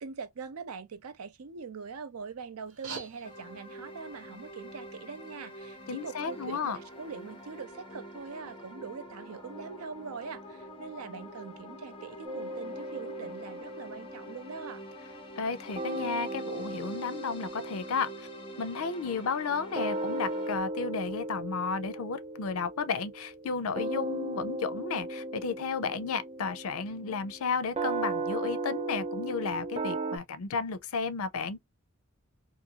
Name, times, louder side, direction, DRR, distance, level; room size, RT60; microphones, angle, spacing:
voice 1, 0.0-14.8, right 5 dB, 85° right, 0.6 m, -43 dB
sound 1, 2.6-7.6, right 5 dB, 70° right, 1.1 m, -49 dB
sound 2, 3.2-20.6, equal, 25° left, 0.9 m, -46 dB
voice 2, 5.9-6.8 15.4-18.3 18.6-31.6, left 5 dB, 75° left, 0.5 m, -33 dB
sound 3, 12.2-15.5 15.8-30.2, right 2 dB, 30° right, 0.4 m, -37 dB
2.6 x 2.6 x 2.8 m
head